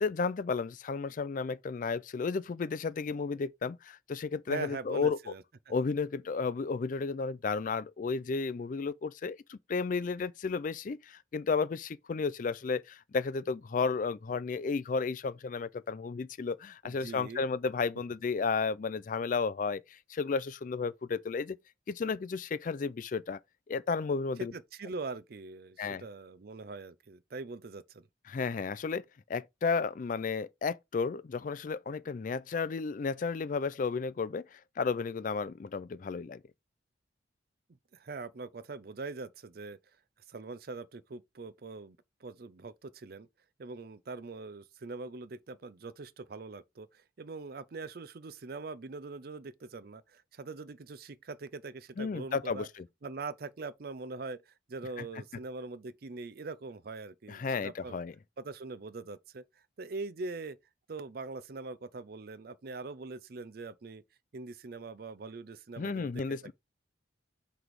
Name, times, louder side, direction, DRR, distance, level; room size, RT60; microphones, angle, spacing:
voice 1, 0.0-5.2 5.7-21.6 21.9-23.4 23.7-24.5 25.8-26.0 28.3-29.0 29.3-36.4 52.0-52.8 55.0-55.1 57.3-58.1 65.8-66.5, left 4 dB, 45° left, 0.3 m, -33 dB
voice 2, 4.5-5.4 16.8-17.5 24.4-28.1 37.9-39.8 40.3-43.3 43.6-52.7 53.0-58.0 58.4-59.4 59.8-60.6 60.9-64.0 64.3-66.2, right 3 dB, 50° right, 0.5 m, -42 dB
5.9 x 3.3 x 4.7 m
head